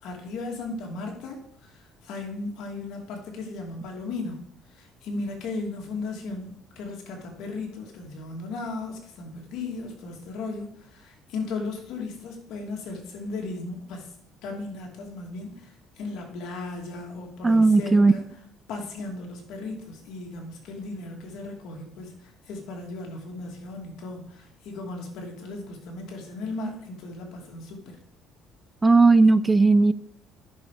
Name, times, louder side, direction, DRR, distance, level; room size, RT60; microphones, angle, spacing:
voice 1, 0.0-1.7 2.0-4.4 4.7-14.1 14.4-18.2 18.7-28.0, left 3 dB, 75° left, 1 dB, 2.7 m, -36 dB
voice 2, 17.4-18.1 28.8-29.9, right 3 dB, 15° right, 16 dB, 0.4 m, -17 dB
10.5 x 6.3 x 5.1 m, 0.66 s
cardioid pair, 105°, 0 cm